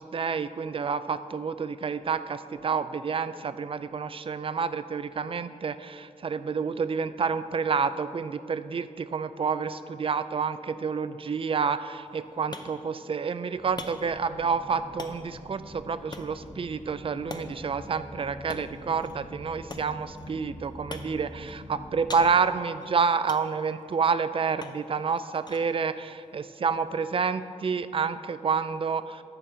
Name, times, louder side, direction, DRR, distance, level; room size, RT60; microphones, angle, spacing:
voice 1, 0.0-29.2, right 5 dB, 45° right, 13 dB, 0.3 m, -29 dB
sound 1, 11.9-27.5, left 3 dB, 30° left, 0.6 m, -47 dB
sound 2, 13.5-22.4, left 1 dB, 55° left, 1.5 m, -45 dB
10.0 x 4.4 x 5.0 m, 2.3 s
wide cardioid pair, 90°, 14 cm